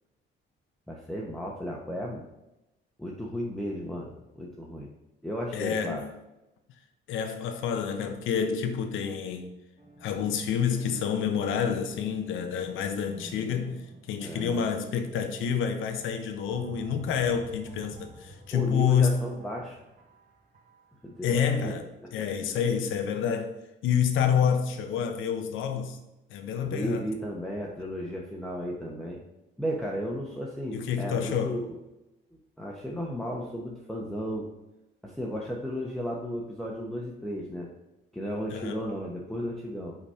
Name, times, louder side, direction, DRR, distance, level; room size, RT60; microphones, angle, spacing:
voice 1, 0.9-2.2 3.0-4.9 5.2-6.0 14.2-14.7 18.5-19.8 21.0-21.4 22.0-22.1 26.6-29.2 29.6-31.7 32.3-34.5 35.0-37.7 38.1-40.0, equal, ahead, 1.0 m, -34 dB
voice 2, 5.5-6.1 7.1-9.5 10.0-13.8 14.1-19.2 21.2-23.5 23.8-26.0 26.3-27.0 30.7-31.6 38.5-38.8, left 7 dB, 85° left, 0.9 m, -28 dB
sound 1, 9.8-21.2, right 1 dB, 40° right, 2.2 m, -50 dB
5.8 x 4.1 x 5.6 m
cardioid pair, 90°, 20 cm